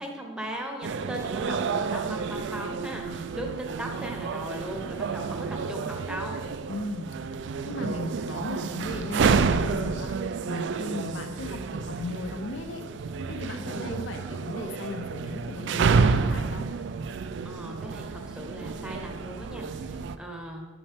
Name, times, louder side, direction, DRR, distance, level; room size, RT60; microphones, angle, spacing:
voice 1, 0.0-3.5 3.8-6.5 9.9-10.1 13.4-13.9 17.4-20.7, right 1 dB, 5° right, 1 dB, 0.8 m, -38 dB
sound 1, 0.8-20.2, right 5 dB, 60° right, 0.3 m, -29 dB
voice 2, 6.7-10.2 10.5-12.8 13.3-16.7, left 2 dB, 75° left, 5 dB, 0.7 m, -36 dB
11.0 x 5.3 x 3.5 m, 1.4 s
head